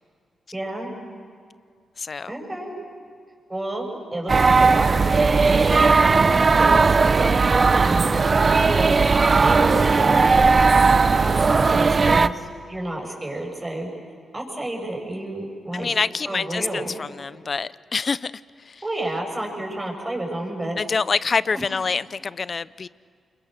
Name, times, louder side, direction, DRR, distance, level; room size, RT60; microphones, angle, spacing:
voice 1, 0.5-0.9 2.3-2.7 3.5-10.2 11.2-13.9 14.3-15.9 16.3-16.9 18.8-20.8 21.5-21.6, right 1 dB, 20° right, 1 dB, 7.1 m, -30 dB
voice 2, 2.0-2.3 15.7-18.3 18.6-18.8 20.8-22.9, left 5 dB, 50° left, 19 dB, 0.5 m, -26 dB
sound 1, 4.3-12.3, right 4 dB, 45° right, 0.7 m, -17 dB
28.5 x 23.0 x 6.7 m, 2.2 s
cardioid pair, 60°, 0 cm